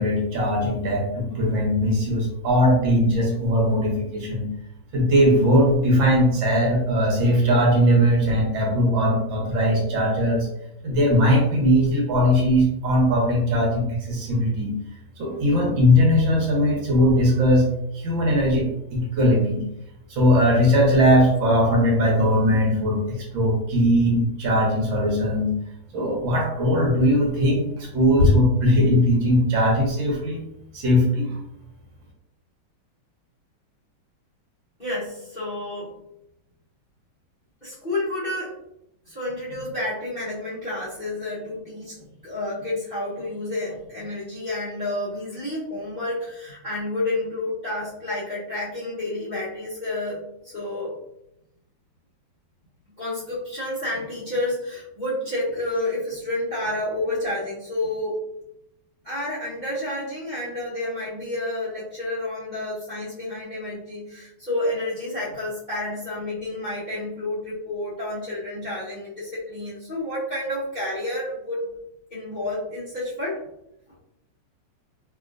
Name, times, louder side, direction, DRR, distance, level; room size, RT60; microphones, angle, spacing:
voice 1, 0.0-4.5 4.9-10.5 10.8-14.7 15.2-17.6 17.9-19.6 20.1-25.5 25.9-30.4 30.7-31.4, equal, 70° right, -2 dB, 1.5 m, -20 dB
voice 2, 34.8-35.9 37.6-38.5 39.1-51.0 53.0-58.2 59.0-71.7 72.1-73.4, left 1 dB, 30° left, -11 dB, 0.8 m, -30 dB
3.3 x 2.8 x 2.4 m, 0.82 s
omnidirectional pair, 2.2 m